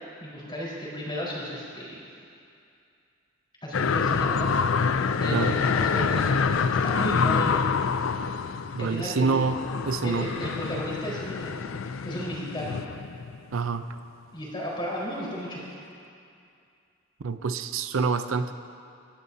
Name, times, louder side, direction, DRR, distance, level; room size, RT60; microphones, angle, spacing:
voice 1, 0.2-2.0 3.6-4.6 5.2-7.6 8.8-9.5 10.0-11.6 12.0-12.8 14.3-15.6, equal, 25° left, -6 dB, 4.4 m, -34 dB
sound 1, 3.7-13.7 14.0-14.1, left 5 dB, 80° left, 0.5 m, -27 dB
voice 2, 8.7-9.6 9.9-10.3 13.5-13.9 17.2-18.5, right 4 dB, 80° right, 10 dB, 0.5 m, -26 dB
27.0 x 12.5 x 2.8 m, 2.5 s
head